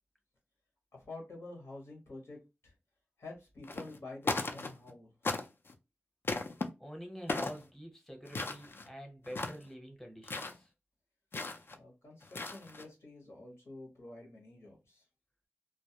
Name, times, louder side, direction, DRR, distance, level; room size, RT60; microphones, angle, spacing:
voice 1, 0.9-2.7 3.2-5.3 11.7-15.0, left 2 dB, 85° left, 1.0 m, -49 dB
sound 1, 3.6-4.0 4.2-4.9 5.2-5.7 6.2-6.7 7.3-7.6 8.3-8.9 9.2-9.7 10.2-10.6 11.3-11.7 12.2-12.8, left 3 dB, 60° left, 0.4 m, -36 dB
voice 2, 6.8-10.7, equal, 5° left, 0.8 m, -47 dB
2.3 x 2.0 x 2.7 m
wide cardioid pair, 70°, 4 cm